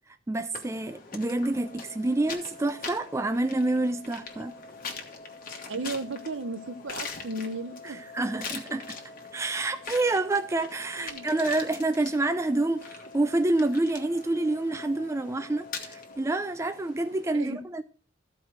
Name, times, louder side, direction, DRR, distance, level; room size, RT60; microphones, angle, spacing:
voice 1, 0.3-4.6 7.8-9.0 9.3-17.8, right 2 dB, 15° right, 0.3 m, -28 dB
sound 1, 0.5-17.3, left 4 dB, 45° left, 1.3 m, -43 dB
sound 2, 1.5-16.2, left 3 dB, 25° left, 1.0 m, -49 dB
voice 2, 5.7-8.0 11.0-11.3 17.3-17.6, right 2 dB, 65° right, 0.7 m, -35 dB
14.0 x 4.6 x 4.7 m
head